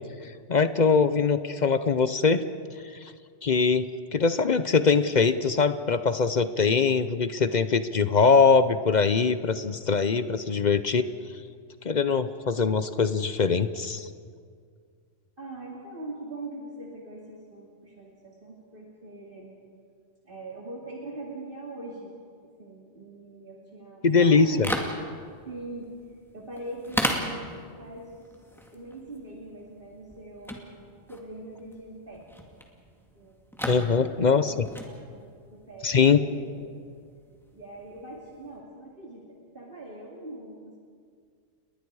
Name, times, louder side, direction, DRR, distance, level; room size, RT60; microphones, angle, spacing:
voice 1, 0.5-2.4 3.4-11.0 11.8-14.1 24.0-24.7 33.7-34.5 35.8-36.2, left 5 dB, 45° left, 12 dB, 0.7 m, -22 dB
voice 2, 15.4-19.6 20.2-22.1 22.4-24.8 25.4-25.9 26.3-28.4 28.7-30.7 31.1-32.3 32.9-33.4 33.9-36.8 37.5-40.8, right 2 dB, 50° right, -3 dB, 2.8 m, -42 dB
sound 1, 24.4-38.6, equal, ahead, 2.1 m, -37 dB
30.0 x 21.0 x 4.8 m, 2.1 s
omnidirectional pair, 1.2 m